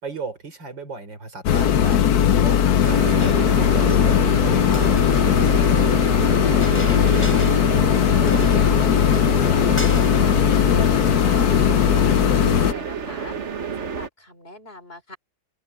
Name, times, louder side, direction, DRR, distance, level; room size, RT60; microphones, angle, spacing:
voice 1, 0.0-4.9 5.2-7.3, right 3 dB, 65° right, 4.7 m, -36 dB
sound 1, 1.4-12.7, left 9 dB, 60° left, 1.2 m, -18 dB
sound 2, 2.8-14.1, right 6 dB, 40° right, 1.3 m, -29 dB
Chink clink, 3.2-4.0 4.6-5.9 6.6-7.7 8.0-8.1 8.3-9.5 9.8-10.3, equal, 5° left, 6.4 m, -37 dB
voice 2, 9.4-10.4 10.7-13.4 13.8-15.2, left 1 dB, 30° left, 3.7 m, -41 dB
open air
omnidirectional pair, 2.1 m